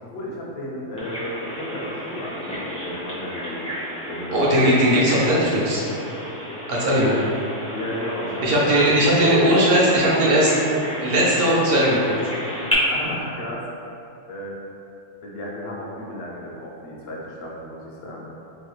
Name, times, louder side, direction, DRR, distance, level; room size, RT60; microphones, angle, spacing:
voice 1, 0.0-3.8 4.1-4.7 7.0-7.3 7.7-8.9 12.9-13.6 14.3-14.6 15.2-18.3, equal, 60° left, -3 dB, 0.7 m, -33 dB
Bird vocalization bird call bird song, 1.0-12.7, left 1 dB, 10° left, 0.4 m, -32 dB
voice 2, 4.3-5.8 6.7-7.1 8.4-10.6 11.0-12.1, equal, 60° right, -6 dB, 0.7 m, -18 dB
3.1 x 2.6 x 2.9 m, 2.7 s
omnidirectional pair, 1.3 m